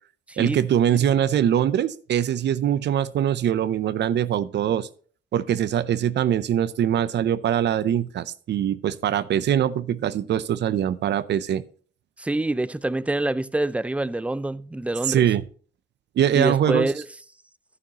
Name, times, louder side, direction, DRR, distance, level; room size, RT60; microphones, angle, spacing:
voice 1, 0.4-4.9 5.3-11.6 15.1-15.4 16.2-16.9, right 10 dB, 60° right, 0.6 m, -22 dB
voice 2, 12.2-15.2 16.3-17.0, right 2 dB, 5° right, 0.4 m, -26 dB
11.5 x 9.6 x 2.9 m
cardioid pair, 90°, 20 cm